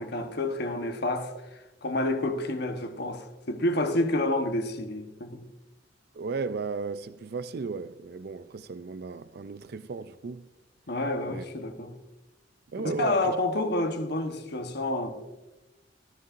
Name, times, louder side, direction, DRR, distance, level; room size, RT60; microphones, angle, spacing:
voice 1, 0.0-1.3 1.8-5.4 10.9-11.9 12.8-15.2, left 1 dB, 60° left, 1.1 m, -29 dB
voice 2, 6.1-10.5 11.3-11.4 12.7-13.4, right 4 dB, 55° right, 0.4 m, -35 dB
13.5 x 13.0 x 2.6 m
head